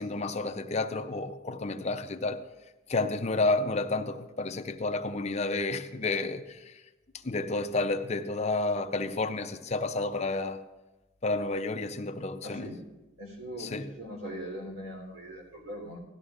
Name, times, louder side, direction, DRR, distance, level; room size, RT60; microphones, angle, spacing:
voice 1, 0.0-2.4 2.9-6.8 7.2-10.6 11.2-12.7 13.6-13.9, left 3 dB, 35° left, 0.5 m, -30 dB
voice 2, 12.4-12.8 13.2-16.0, equal, 85° right, 3.6 m, -41 dB
17.0 x 13.0 x 2.5 m
head